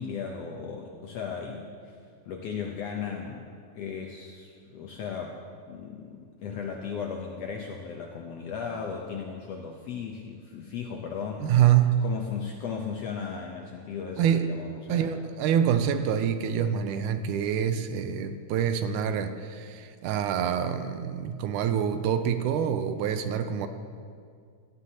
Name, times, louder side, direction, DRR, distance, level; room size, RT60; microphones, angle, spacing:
voice 1, 0.0-2.0 2.3-5.4 5.7-11.5 12.0-15.1, left 6 dB, 75° left, 1 dB, 1.5 m, -36 dB
voice 2, 11.4-12.0 14.2-14.5 14.9-23.7, right 9 dB, 80° right, 9 dB, 2.0 m, -26 dB
17.0 x 13.0 x 2.8 m, 2.1 s
omnidirectional pair, 3.7 m